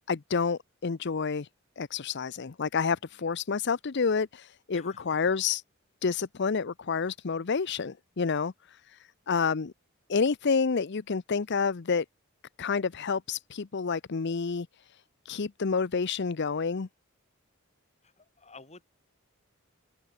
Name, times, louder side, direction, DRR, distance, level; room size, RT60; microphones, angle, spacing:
voice 1, 0.1-1.5 1.8-5.6 6.0-9.7 10.1-12.0 12.6-16.9, left 5 dB, 55° left, 0.6 m, -29 dB
voice 2, 4.7-5.2 18.0-18.8, left 4 dB, 35° left, 7.8 m, -52 dB
head